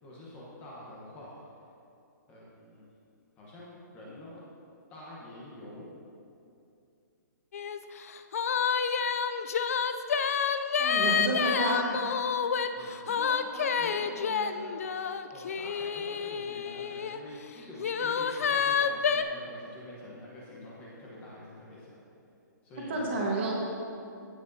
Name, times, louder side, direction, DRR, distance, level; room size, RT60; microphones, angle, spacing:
voice 1, 0.0-1.3 2.3-2.9 3.4-4.4 4.9-5.9 12.8-22.0 22.6-23.3, left 1 dB, 15° left, -6 dB, 1.0 m, -46 dB
sound 1, 7.5-7.8 8.1-17.2 17.8-19.2, left 6 dB, 45° left, 0.4 m, -29 dB
voice 2, 10.8-11.9 22.9-23.5, right 2 dB, 35° right, -2 dB, 1.5 m, -30 dB
16.5 x 6.1 x 2.7 m, 2.6 s
hypercardioid pair, 175°, 10 cm